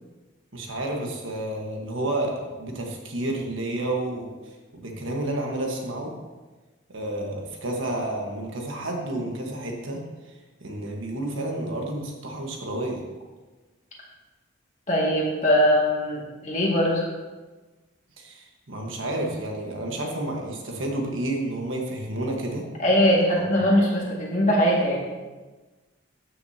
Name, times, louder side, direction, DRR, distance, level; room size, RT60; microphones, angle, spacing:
voice 1, 0.5-6.1 6.9-10.0 10.6-13.0 18.2-22.6 23.4-23.5, right 1 dB, 75° right, 1 dB, 1.3 m, -30 dB
voice 2, 14.9-17.1 22.8-25.0, equal, 35° left, -4 dB, 1.9 m, -21 dB
13.0 x 6.4 x 2.8 m, 1.2 s
head